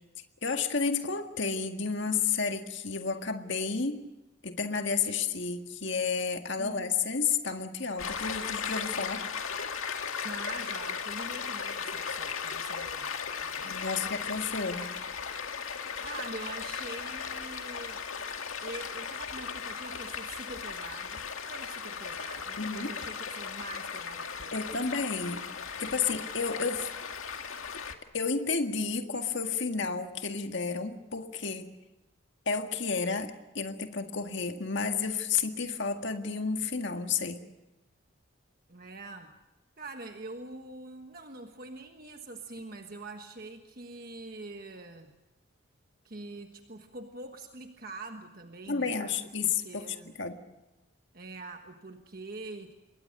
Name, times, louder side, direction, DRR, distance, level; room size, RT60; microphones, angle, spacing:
voice 1, 0.4-4.1 4.4-9.2 13.6-14.9 22.6-22.9 24.5-25.4 25.8-26.9 28.1-31.7 32.5-37.4 48.7-50.4, left 5 dB, 60° left, 6 dB, 1.8 m, -31 dB
voice 2, 6.6-6.9 10.2-13.1 13.4-13.8 16.0-18.0 18.6-24.9 38.7-39.3 39.8-45.1 46.0-50.1 51.1-52.7, right 2 dB, 45° right, 5 dB, 1.4 m, -44 dB
Stream, 8.0-27.9, left 6 dB, 85° left, 2.0 m, -37 dB
27.0 x 22.5 x 6.7 m, 1.0 s
head